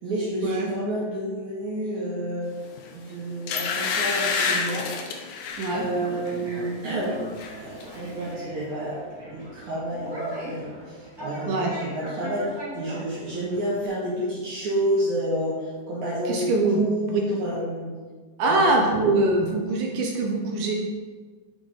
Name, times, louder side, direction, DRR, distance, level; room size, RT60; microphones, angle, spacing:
voice 1, 0.0-2.5 2.9-5.3 5.7-7.2 7.6-9.0 9.3-17.9 18.4-19.0, right 1 dB, 60° right, -8 dB, 2.6 m, -30 dB
sound 1, 2.8-2.9 3.5-5.8 6.3-6.5 6.8-7.5 7.8-7.9, left 5 dB, 85° left, 1.7 m, -28 dB
Conversation, 5.5-13.9, right 1 dB, 15° right, 0.9 m, -40 dB
voice 2, 16.3-16.8 17.1-17.2 18.4-20.7, right 2 dB, 75° right, 1 dB, 1.9 m, -23 dB
6.5 x 6.2 x 4.0 m, 1.5 s
omnidirectional pair, 4.4 m